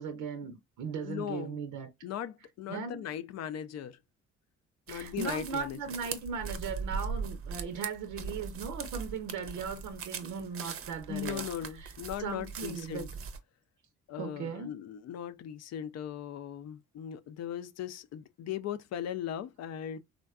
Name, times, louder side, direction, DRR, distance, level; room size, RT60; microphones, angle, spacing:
voice 1, 0.0-1.9 2.7-3.0 4.9-11.4 11.8-11.9 12.2-13.1 14.2-14.8, right 6 dB, 90° right, 0.6 m, -38 dB
voice 2, 1.0-1.6 2.0-4.0 4.9-5.9 11.1-13.1 14.1-20.0, left 10 dB, 60° left, 0.4 m, -38 dB
sound 1, 4.9-13.4, right 5 dB, 50° right, 0.6 m, -40 dB
3.5 x 2.2 x 2.3 m
cardioid pair, 90°, 30 cm